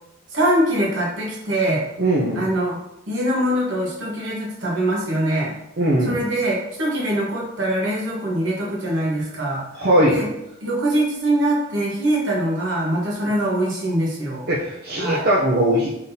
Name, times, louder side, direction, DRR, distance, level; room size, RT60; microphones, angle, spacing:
voice 1, 0.3-1.8 2.3-2.8 3.1-5.5 6.0-10.3 10.6-14.5 15.0-15.2, right 1 dB, 65° right, -3 dB, 1.2 m, -23 dB
voice 2, 2.0-2.4 5.8-6.2 9.7-10.2 14.5-15.9, right 1 dB, 50° right, -5 dB, 0.5 m, -19 dB
3.9 x 3.7 x 2.7 m, 0.85 s
head